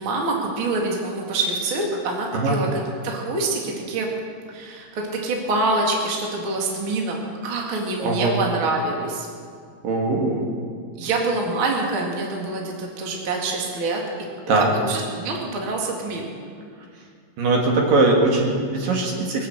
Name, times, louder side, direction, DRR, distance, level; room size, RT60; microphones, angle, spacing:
voice 1, 0.0-4.1 4.5-9.3 11.0-14.0 14.5-16.3, right 2 dB, 40° right, -1 dB, 2.4 m, -26 dB
voice 2, 8.0-8.3 9.8-10.4 14.5-14.7 17.4-19.5, right 2 dB, 70° right, 0 dB, 3.5 m, -20 dB
22.0 x 7.7 x 8.0 m, 2.1 s
omnidirectional pair, 4.2 m